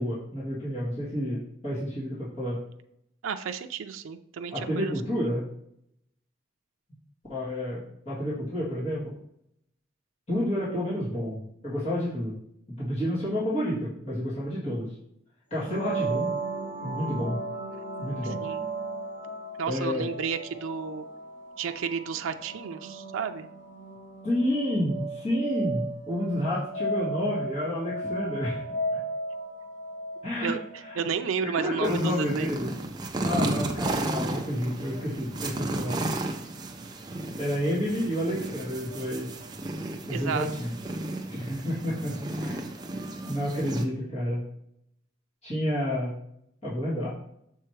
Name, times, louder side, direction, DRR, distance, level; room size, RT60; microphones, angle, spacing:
voice 1, 0.0-2.6 4.5-5.4 7.3-9.1 10.3-12.3 12.8-14.9 15.5-16.3 16.8-17.4 18.0-18.4 19.7-20.0 24.2-28.6 30.2-30.5 30.9-31.0 31.4-32.8 33.2-36.0 37.4-39.3 40.1-40.7 41.3-42.6 43.3-44.4 45.4-46.1 46.6-47.1, equal, 30° left, -10 dB, 1.8 m, -30 dB
voice 2, 3.2-5.3 18.2-18.7 19.6-21.1 21.6-23.5 30.4-32.5 40.1-40.5, right 6 dB, 85° right, 8 dB, 0.4 m, -32 dB
sound 1, 15.5-31.2, right 2 dB, 65° left, 1.3 m, -35 dB
sound 2, 31.8-43.8, right 2 dB, 20° right, 0.5 m, -33 dB
6.7 x 4.6 x 3.1 m, 0.74 s
head